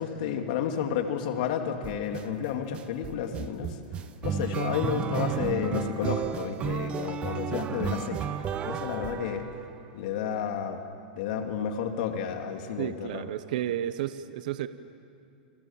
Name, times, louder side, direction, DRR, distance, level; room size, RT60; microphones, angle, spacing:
voice 1, 0.0-3.8 4.2-8.3 8.6-9.5 9.9-10.8 11.2-13.3, left 8 dB, 55° left, 4 dB, 2.5 m, -31 dB
sound 1, 1.8-2.2 2.7-9.9, right 8 dB, 20° right, 1.0 m, -33 dB
voice 2, 12.8-14.7, right 12 dB, 60° right, 12 dB, 1.0 m, -32 dB
30.0 x 27.0 x 7.3 m, 2.5 s
supercardioid pair, 150°, 5 cm